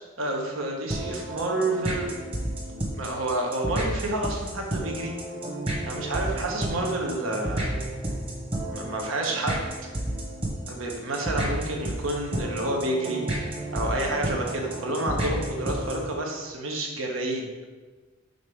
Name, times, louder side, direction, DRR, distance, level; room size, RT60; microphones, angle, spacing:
voice 1, 0.2-2.1 2.9-5.1 5.9-7.7 8.7-9.7 10.7-13.2 13.7-17.5, right 1 dB, 85° right, 0 dB, 1.1 m, -29 dB
sound 1, 0.9-16.1, right 1 dB, 30° right, 1.1 m, -31 dB
5.1 x 4.0 x 5.0 m, 1.3 s
head